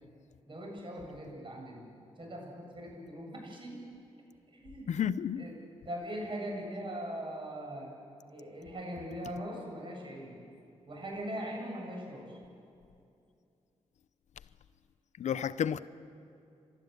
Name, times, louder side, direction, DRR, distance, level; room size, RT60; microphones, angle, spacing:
voice 1, 0.5-1.9 2.2-3.8 4.5-4.9 5.4-5.6 5.8-7.9 8.3-10.4 10.9-12.4, equal, 45° right, 7.9 m, -40 dB
voice 2, 4.9-5.5 15.2-15.8, left 8 dB, 70° left, 0.6 m, -31 dB
29.5 x 13.0 x 8.3 m
cardioid pair, 60°, 12 cm